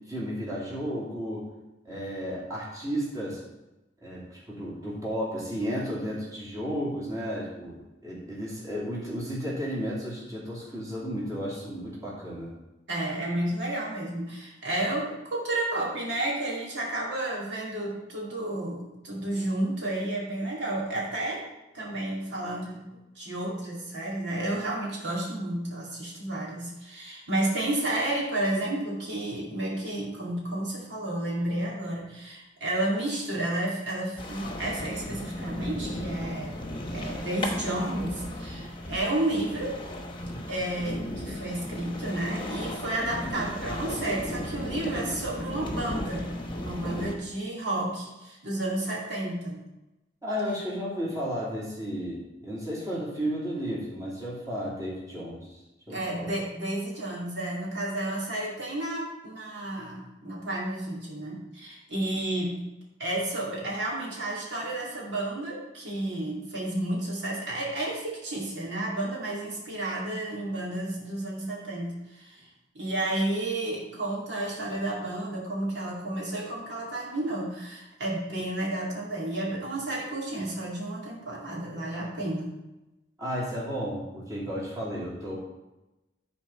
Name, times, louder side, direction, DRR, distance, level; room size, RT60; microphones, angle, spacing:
voice 1, 0.1-1.5 1.8-3.4 4.0-12.5 50.2-55.6 55.9-56.3 83.2-85.4, equal, 20° right, -7 dB, 2.7 m, -33 dB
voice 2, 12.9-21.5 21.7-22.8 23.1-36.6 36.9-39.7 40.5-46.3 46.6-49.6 55.9-62.5 63.0-72.4 72.7-82.5, right 1 dB, 70° right, -5 dB, 2.4 m, -31 dB
sound 1, 34.2-47.2, left 1 dB, 25° left, 1.2 m, -35 dB
11.0 x 4.4 x 5.5 m, 1.0 s
head